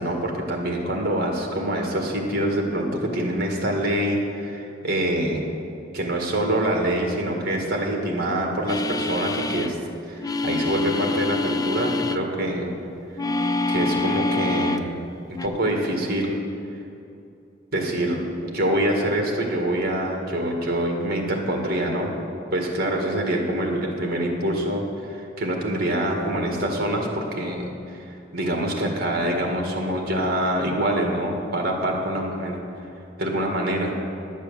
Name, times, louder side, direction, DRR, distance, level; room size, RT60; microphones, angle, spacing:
voice 1, 0.0-5.4 5.9-9.8 10.1-12.7 13.7-15.1 15.4-16.4 17.7-18.2 18.4-22.1 22.5-32.6 33.2-33.9, right 1 dB, 55° right, 1 dB, 1.8 m, -25 dB
sound 1, 8.7-9.7 10.2-12.2 13.2-14.9 15.3-15.5, left 3 dB, 20° left, 0.4 m, -26 dB
11.5 x 7.4 x 7.3 m, 2.7 s
head